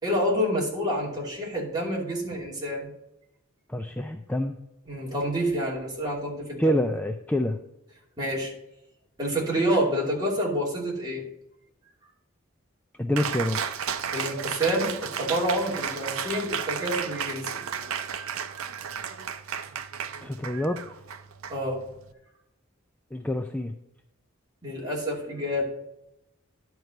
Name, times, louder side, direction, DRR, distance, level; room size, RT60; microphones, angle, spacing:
voice 1, 0.0-2.9 4.9-6.8 8.2-8.5 9.2-11.2 14.1-17.6 21.5-21.8 24.6-25.7, equal, 20° right, -4 dB, 2.7 m, -28 dB
voice 2, 3.7-4.6 6.6-7.6 13.0-13.6 20.2-20.8 23.1-23.7, equal, 5° left, 5 dB, 0.3 m, -27 dB
Cheering, 13.2-22.1, right 7 dB, 80° right, 0.6 m, -33 dB
11.0 x 4.7 x 6.5 m, 0.85 s
head